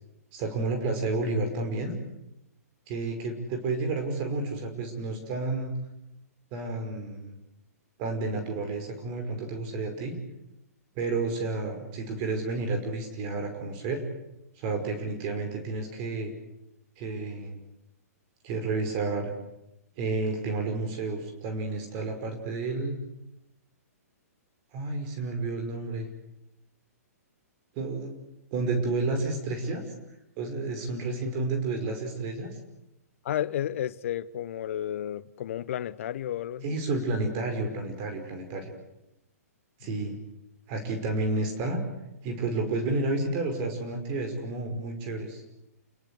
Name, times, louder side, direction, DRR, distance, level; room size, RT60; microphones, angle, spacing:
voice 1, 0.3-1.9 2.9-5.7 6.5-7.4 8.0-10.2 11.0-14.0 14.6-16.3 17.0-17.6 18.4-19.3 20.0-23.0 24.7-26.1 27.8-28.1 28.5-29.8 30.4-32.6 36.6-38.7 39.8-40.1 40.7-41.8 42.2-45.4, right 3 dB, 35° right, 5.4 m, -31 dB
voice 2, 33.2-36.7 39.8-39.9, left 11 dB, 55° left, 1.2 m, -32 dB
29.0 x 22.0 x 8.3 m
figure-of-eight pair, 120°, 9 cm